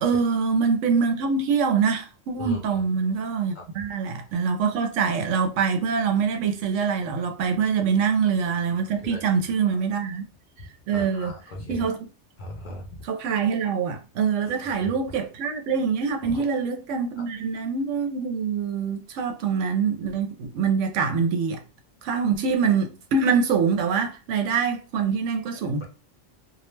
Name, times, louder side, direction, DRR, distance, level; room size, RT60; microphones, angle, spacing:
voice 1, 0.0-10.2 10.9-11.3 11.7-12.0 13.0-21.6 22.0-25.9, right 6 dB, 85° right, 0.9 m, -24 dB
voice 2, 2.4-2.8 3.5-3.6 8.9-9.2 9.7-9.8 10.9-11.9 12.4-13.0 14.4-14.9 16.3-16.4 17.2-17.3, left 2 dB, 50° left, 0.6 m, -38 dB
2.3 x 2.1 x 3.0 m
omnidirectional pair, 1.2 m